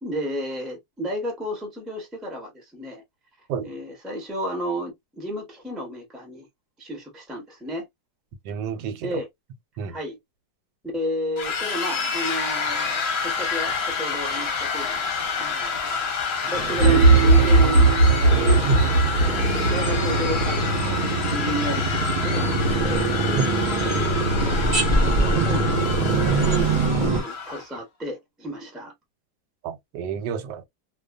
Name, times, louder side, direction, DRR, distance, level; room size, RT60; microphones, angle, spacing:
voice 1, 0.0-3.0 3.6-6.5 6.8-7.9 9.0-9.3 9.8-10.2 10.9-15.1 15.3-15.9 16.4-18.4 19.2-21.0 21.3-24.6 25.0-26.2 26.5-26.7 27.0-28.9, equal, ahead, 0.6 m, -32 dB
voice 2, 8.4-9.2 9.8-10.0 18.7-18.9 23.3-23.5 29.6-30.6, right 6 dB, 90° right, 1.2 m, -29 dB
sound 1, 11.4-27.7, left 5 dB, 50° left, 0.9 m, -28 dB
sound 2, 16.5-27.2, right 3 dB, 40° right, 0.7 m, -24 dB
sound 3, 16.8-20.2, right 3 dB, 60° right, 0.9 m, -17 dB
2.5 x 2.3 x 2.3 m
omnidirectional pair, 1.8 m